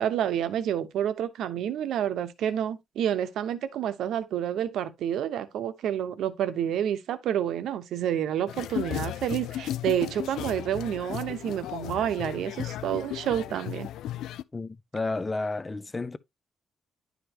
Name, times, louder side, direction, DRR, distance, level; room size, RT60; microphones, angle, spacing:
voice 1, 0.0-13.9, right 10 dB, 70° right, 0.9 m, -29 dB
sound 1, 8.5-14.4, left 12 dB, 85° left, 0.4 m, -35 dB
voice 2, 14.5-16.2, left 3 dB, 15° left, 0.4 m, -31 dB
11.0 x 5.1 x 2.9 m
cardioid pair, 180°, 0 cm